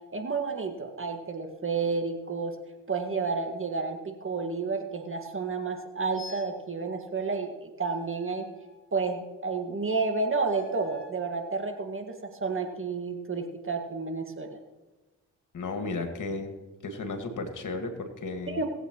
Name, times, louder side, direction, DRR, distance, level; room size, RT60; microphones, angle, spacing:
voice 1, 0.1-2.6 2.9-8.5 8.9-14.6 18.5-18.7, right 4 dB, 35° right, 4 dB, 1.8 m, -31 dB
sound 1, 6.1-6.6 7.8-9.0 10.4-11.3, left 3 dB, 30° left, 1.9 m, -49 dB
voice 2, 15.5-16.6 16.8-18.6, left 3 dB, 50° left, 5 dB, 1.9 m, -34 dB
19.0 x 8.1 x 3.1 m, 1.1 s
hypercardioid pair, 45°, 38 cm